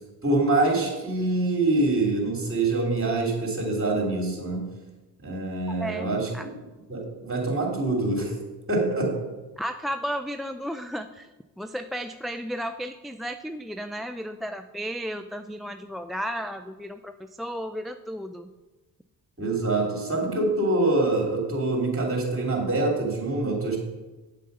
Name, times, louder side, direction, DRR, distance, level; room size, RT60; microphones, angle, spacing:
voice 1, 0.2-4.7 5.2-6.5 6.9-8.3 8.7-9.2 19.4-23.8, right 2 dB, 30° right, 0 dB, 3.2 m, -25 dB
voice 2, 5.7-6.5 9.6-11.3 11.6-18.5, equal, ahead, 6 dB, 0.4 m, -34 dB
7.8 x 7.5 x 5.5 m, 1.1 s
cardioid pair, 65°, 41 cm